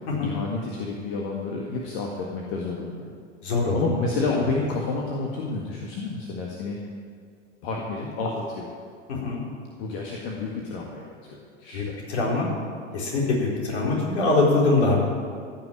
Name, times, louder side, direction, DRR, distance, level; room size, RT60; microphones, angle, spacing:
voice 1, 0.2-3.1 3.7-6.8 7.6-8.7 9.8-12.0, left 3 dB, 45° left, -1 dB, 1.8 m, -30 dB
voice 2, 3.4-3.8 9.1-9.4 11.7-12.5 12.9-15.0, left 3 dB, 65° left, -3 dB, 4.2 m, -23 dB
15.0 x 6.0 x 8.8 m, 2.2 s
figure-of-eight pair, 90°, 36 cm